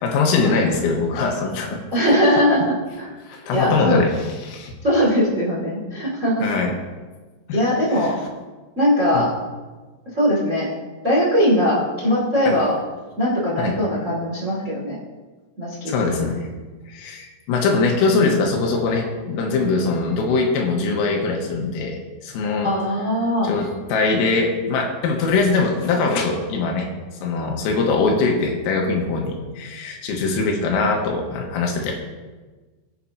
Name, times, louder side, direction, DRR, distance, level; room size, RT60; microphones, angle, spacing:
voice 1, 0.0-1.8 3.3-4.1 4.4-4.7 6.4-6.8 7.5-7.6 7.9-8.1 9.1-9.2 12.5-12.6 13.6-13.8 15.9-16.5 16.9-22.7 23.4-26.9 27.2-32.0, left 4 dB, 90° left, 1 dB, 4.0 m, -22 dB
voice 2, 1.9-3.1 3.5-4.0 4.8-6.4 7.5-8.1 8.7-9.3 10.1-10.7 11.0-12.7 13.2-15.0 15.6-16.1 22.6-23.5, equal, 40° right, -5 dB, 1.0 m, -20 dB
21.5 x 7.5 x 2.8 m, 1.3 s
omnidirectional pair, 5.9 m